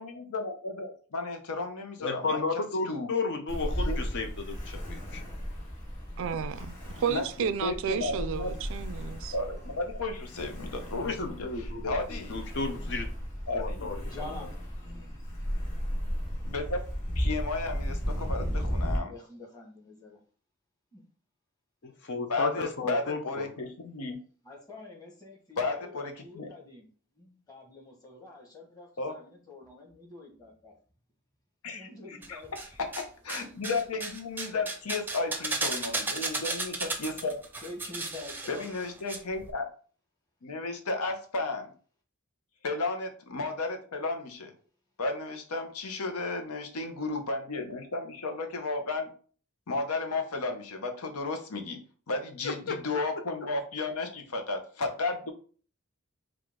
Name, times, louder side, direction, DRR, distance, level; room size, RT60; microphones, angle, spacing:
voice 1, 0.0-3.1 3.9-4.0 7.1-8.5 9.3-11.5 11.8-12.4 13.5-13.9 16.5-16.8 17.2-19.1 22.3-24.2 25.6-26.5 29.0-29.2 31.6-32.4 32.8-37.4 38.5-39.7 40.4-41.7 42.6-44.5 45.0-49.1 49.7-51.8 52.1-55.3, left 3 dB, 85° left, 0.8 m, -33 dB
voice 2, 2.0-5.2 11.0-13.1 13.5-14.0 21.8-23.5 52.4-52.8, left 3 dB, 55° left, 0.6 m, -33 dB
Ocean, 3.5-19.0, equal, 35° left, 1.4 m, -35 dB
voice 3, 6.2-9.3, right 7 dB, 60° right, 0.3 m, -32 dB
voice 4, 14.0-14.5 14.8-15.2 19.1-20.2 20.9-21.0 24.4-26.9 27.1-30.7 31.7-32.5 34.4-34.5 35.6-35.8 37.6-38.6, left 2 dB, 15° left, 1.3 m, -46 dB
sound 1, 32.2-33.0 33.3-39.2 39.4-39.5, right 3 dB, 10° right, 0.6 m, -34 dB
4.9 x 2.4 x 3.7 m
head